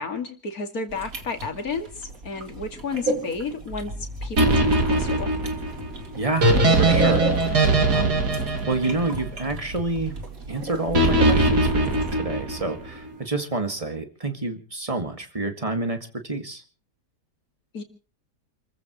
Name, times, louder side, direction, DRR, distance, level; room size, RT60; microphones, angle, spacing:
voice 1, 0.0-5.3 17.7-17.8, left 4 dB, 60° left, 5 dB, 2.8 m, -32 dB
sound 1, 0.9-12.2, right 1 dB, 55° right, 2.9 m, -34 dB
sound 2, 4.4-9.7 10.9-12.9, right 2 dB, 70° right, 3.2 m, -21 dB
voice 2, 6.2-8.2 8.7-10.1 10.5-16.0 16.2-16.6, right 3 dB, 20° right, 6 dB, 2.2 m, -28 dB
29.0 x 15.0 x 3.1 m, 0.38 s
omnidirectional pair, 1.8 m